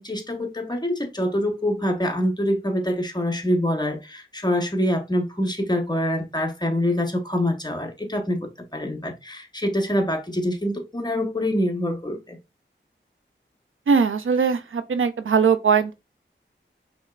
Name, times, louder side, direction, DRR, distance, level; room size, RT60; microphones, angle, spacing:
voice 1, 0.0-12.4, left 1 dB, 20° left, 1.1 m, -25 dB
voice 2, 13.9-15.9, right 6 dB, 85° right, 0.5 m, -20 dB
5.3 x 3.0 x 2.4 m
wide cardioid pair, 45°, 20 cm